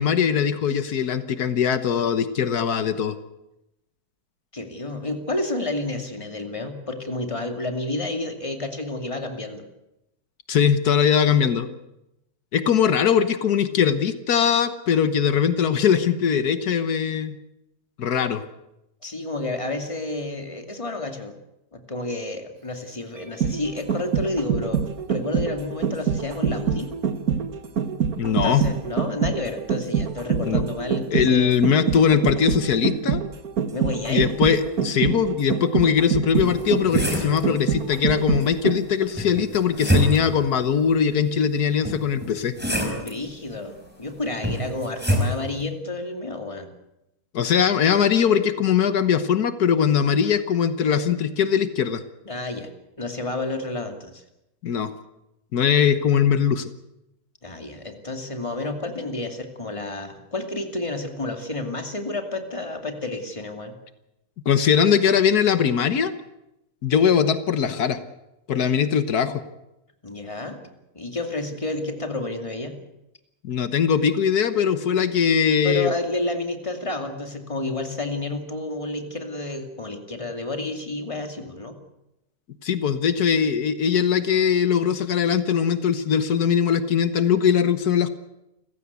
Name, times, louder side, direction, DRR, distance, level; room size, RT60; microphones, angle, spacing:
voice 1, 0.0-3.2 10.5-11.7 12.5-17.4 18.0-18.4 28.2-28.6 30.4-30.6 31.1-33.2 34.1-42.5 47.3-52.0 54.6-54.9 55.5-56.7 64.4-66.1 66.8-68.0 68.5-69.4 73.4-75.9 82.6-88.1, left 7 dB, 85° left, 11 dB, 1.7 m, -21 dB
voice 2, 4.5-9.6 19.0-21.3 21.7-24.8 25.1-26.9 28.4-31.5 33.7-34.3 42.9-46.7 52.3-52.7 53.0-54.2 57.4-63.7 70.0-70.6 70.9-72.7 75.6-81.7, left 2 dB, 20° left, 5 dB, 2.6 m, -30 dB
sound 1, 23.2-39.0 39.4-39.5, right 7 dB, 70° right, 1.9 m, -25 dB
sound 2, 36.4-37.5 39.2-40.4 41.9-43.1 44.4-45.3, equal, 5° right, 5.2 m, -25 dB
29.0 x 15.5 x 8.3 m, 0.91 s
omnidirectional pair, 1.6 m